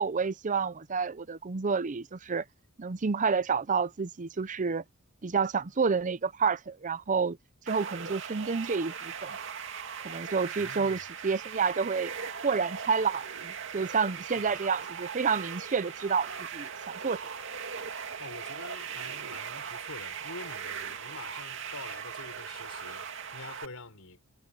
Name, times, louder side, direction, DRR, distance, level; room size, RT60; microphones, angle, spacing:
voice 1, 0.0-2.4 2.8-4.8 5.2-7.4 7.7-9.4 10.0-12.1 12.4-17.2, right 5 dB, 35° right, 0.6 m, -29 dB
sound 1, 7.7-23.7, right 7 dB, 60° right, 2.4 m, -39 dB
voice 2, 10.6-11.0 14.2-14.6 18.2-24.2, left 3 dB, 80° left, 5.5 m, -46 dB
head